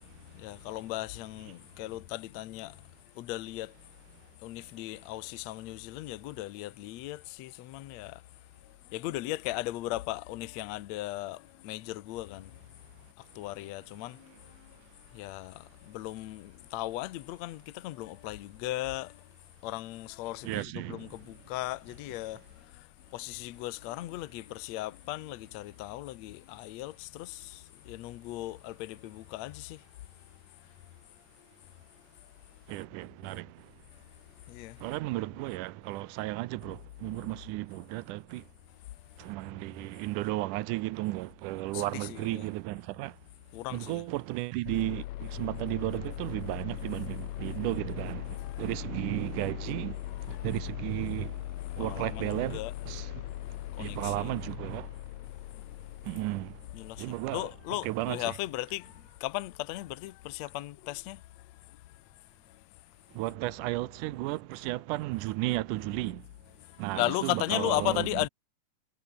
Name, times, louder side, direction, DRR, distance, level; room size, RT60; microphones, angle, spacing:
voice 1, 0.3-2.8 3.2-3.8 4.4-8.2 8.6-12.6 13.2-14.8 15.1-19.3 19.6-29.8 34.5-34.8 41.7-42.5 43.5-44.1 47.4-47.5 48.3-48.7 50.1-50.5 51.7-52.7 53.5-54.3 55.6-56.0 56.7-61.8 62.5-62.6 66.6-68.3, left 17 dB, 70° left, 1.9 m, -37 dB
voice 2, 20.4-21.1 32.7-33.5 34.8-38.4 39.2-43.1 43.7-50.0 50.3-51.4 51.8-52.6 52.9-53.2 53.8-54.9 56.0-56.6 57.0-57.5 57.8-58.3 63.2-66.2 66.8-68.1, right 19 dB, 80° right, 2.1 m, -34 dB
sound 1, 44.7-57.7, left 14 dB, 90° left, 2.9 m, -40 dB
omnidirectional pair, 3.8 m